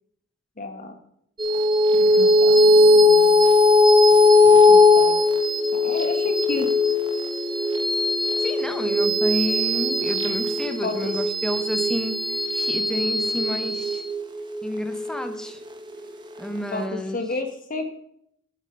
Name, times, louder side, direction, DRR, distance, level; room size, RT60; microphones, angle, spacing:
voice 1, 0.6-1.0 2.1-3.4 4.7-5.2 5.7-6.7 10.8-11.2 16.7-17.8, left 2 dB, 40° left, 6 dB, 1.4 m, -32 dB
sound 1, 1.4-16.1, left 2 dB, 20° right, 1.0 m, -19 dB
voice 2, 8.4-12.2 12.5-14.0 14.6-15.6 16.4-17.2, equal, 5° left, 6 dB, 0.9 m, -30 dB
8.9 x 8.4 x 5.3 m, 0.72 s
head